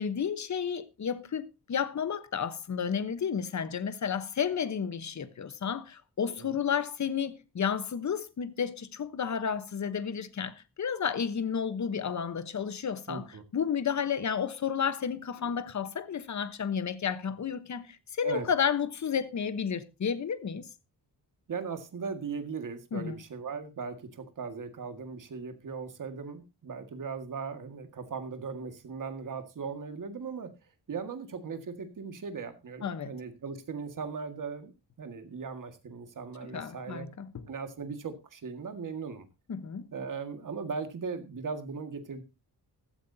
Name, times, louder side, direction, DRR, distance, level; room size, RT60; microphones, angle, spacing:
voice 1, 0.0-13.2 13.5-20.6 22.9-23.1 32.8-33.1 36.4-37.4 39.5-39.9, left 7 dB, 45° left, 1.1 m, -32 dB
voice 2, 6.2-6.6 13.1-13.4 18.2-18.5 21.5-30.5 30.9-34.7 35.0-37.1 37.5-39.3 39.9-42.2, right 5 dB, 50° right, 1.9 m, -38 dB
15.5 x 12.5 x 2.8 m
wide cardioid pair, 145°, 40 cm